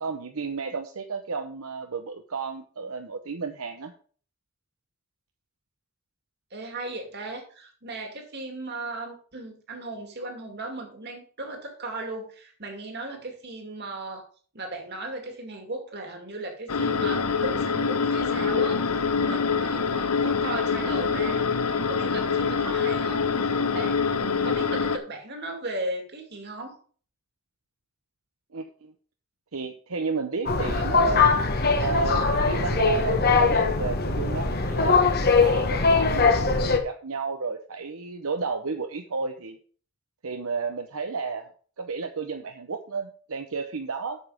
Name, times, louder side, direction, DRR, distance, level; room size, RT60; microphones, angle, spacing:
voice 1, 0.0-3.9 28.5-28.9 29.5-31.2 31.8-35.0 35.4-39.6 40.2-41.5 41.8-44.2, right 4 dB, 70° right, 6 dB, 0.8 m, -32 dB
voice 2, 6.5-14.3 14.5-26.8, right 2 dB, 50° right, 4 dB, 2.4 m, -37 dB
sound 1, 16.7-25.0, left 5 dB, 90° left, 0.9 m, -25 dB
sound 2, 30.5-36.8, left 4 dB, 45° left, 1.2 m, -21 dB
8.5 x 7.2 x 4.9 m, 0.43 s
head